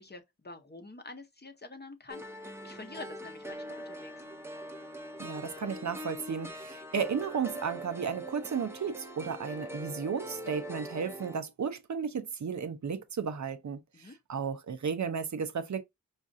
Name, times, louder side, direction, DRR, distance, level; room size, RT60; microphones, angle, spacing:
voice 1, 0.0-4.2 13.9-14.1, left 3 dB, 35° left, 0.7 m, -47 dB
sound 1, 2.1-11.4, equal, 10° right, 0.6 m, -42 dB
voice 2, 5.2-15.8, right 6 dB, 65° right, 0.6 m, -34 dB
5.1 x 2.4 x 2.5 m
wide cardioid pair, 55°, 31 cm